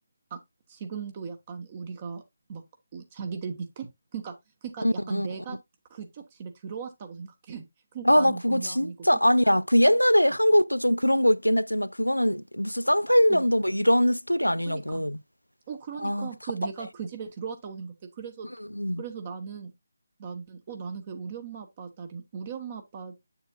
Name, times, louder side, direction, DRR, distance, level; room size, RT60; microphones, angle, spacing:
voice 1, 0.7-2.2 2.5-2.6 2.9-4.3 4.6-5.6 5.9-7.6 7.9-9.1 13.3-13.4 14.6-15.1 15.7-18.5 19.0-19.7 20.2-23.3, right 6 dB, 25° right, 1.1 m, -38 dB
voice 2, 4.8-5.3 8.0-15.2 16.0-16.3 18.7-19.0, equal, 90° left, 0.4 m, -22 dB
7.8 x 7.0 x 2.4 m
figure-of-eight pair, 155°, 0 cm